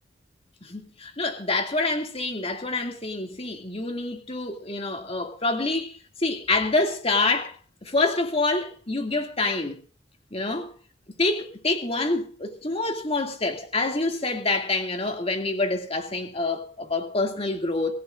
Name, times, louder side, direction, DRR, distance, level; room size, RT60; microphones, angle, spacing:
voice 1, 0.6-9.8 10.3-10.7 11.2-17.9, left 2 dB, 30° left, 2.4 m, -27 dB
25.0 x 15.0 x 2.6 m
head